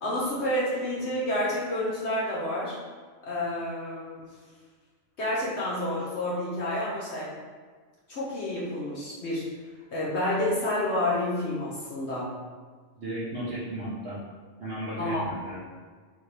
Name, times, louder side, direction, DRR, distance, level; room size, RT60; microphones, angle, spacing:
voice 1, 0.0-2.7 3.3-4.2 5.2-7.3 8.1-9.5 9.9-12.3 15.0-15.2, left 1 dB, 60° left, -7 dB, 1.1 m, -29 dB
voice 2, 13.0-14.2 14.6-15.6, right 1 dB, 55° right, -10 dB, 1.2 m, -35 dB
4.0 x 3.6 x 3.3 m, 1.5 s
omnidirectional pair, 1.3 m